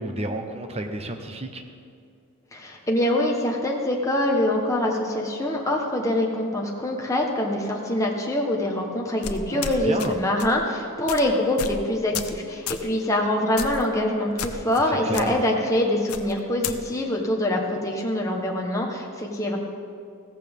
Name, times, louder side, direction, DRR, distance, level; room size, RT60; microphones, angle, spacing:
voice 1, 0.0-1.6 9.5-10.2 14.9-15.4, right 1 dB, 30° right, 5 dB, 0.9 m, -31 dB
voice 2, 2.5-19.6, left 1 dB, 15° left, -1 dB, 1.1 m, -24 dB
sound 1, 9.2-10.1 10.4-10.6 11.1-11.2 11.6-11.8 12.1-12.4 12.7-12.9 13.6-13.8 14.4-14.8 15.1-15.2 16.1-16.8, left 7 dB, 85° left, 0.7 m, -32 dB
15.5 x 14.5 x 3.6 m, 2.4 s
head